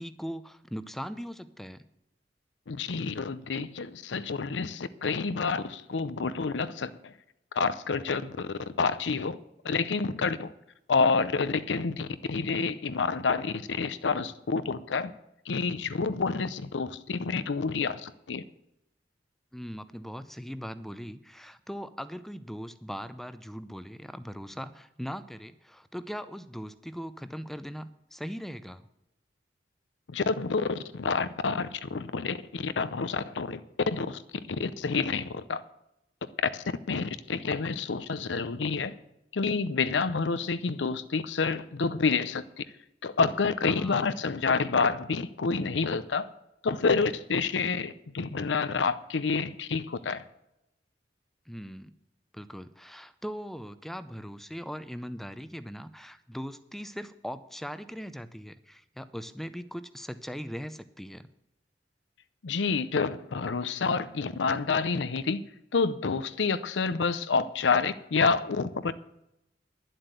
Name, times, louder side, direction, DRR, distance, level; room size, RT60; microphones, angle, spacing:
voice 1, 0.0-1.8 19.5-28.9 43.6-44.1 51.5-51.9 52.3-61.3, equal, ahead, 0.5 m, -40 dB
voice 2, 2.7-7.1 7.5-9.4 9.6-10.5 10.9-15.1 15.5-18.4 30.1-34.2 34.5-35.6 36.5-39.0 39.3-42.4 43.0-46.3 46.6-50.2 62.4-65.4 65.7-68.9, left 4 dB, 80° left, 0.6 m, -28 dB
11.0 x 7.8 x 8.0 m
head